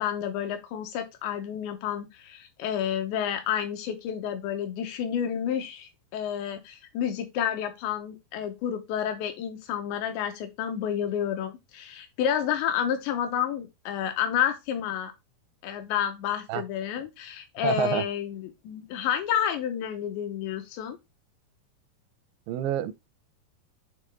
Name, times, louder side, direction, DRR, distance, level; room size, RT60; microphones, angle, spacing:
voice 1, 0.0-15.1 15.6-21.0, left 9 dB, 85° left, 3.3 m, -30 dB
voice 2, 17.6-18.1 22.5-22.9, right 12 dB, 85° right, 2.9 m, -28 dB
8.9 x 3.3 x 3.5 m
omnidirectional pair, 5.1 m